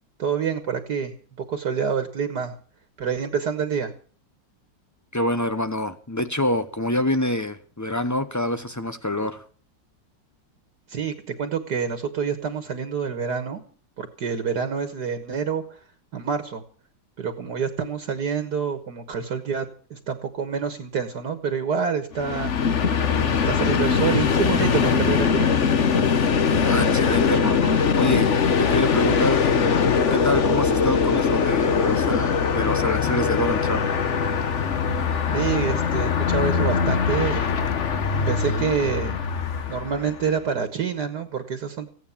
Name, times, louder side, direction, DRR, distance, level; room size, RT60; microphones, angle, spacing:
voice 1, 0.2-2.5 3.0-3.9 10.9-13.6 14.0-15.6 16.1-16.6 17.2-22.8 23.4-25.5 35.3-37.7 38.3-39.2 39.7-41.9, right 6 dB, 65° right, 7 dB, 2.0 m, -27 dB
voice 2, 5.1-9.4 26.6-28.3 28.6-29.4 30.1-33.8, left 1 dB, 30° left, 10 dB, 0.3 m, -26 dB
Train, 22.1-40.3, left 6 dB, 45° left, 1.2 m, -22 dB
16.5 x 9.6 x 7.1 m, 0.43 s
omnidirectional pair, 2.0 m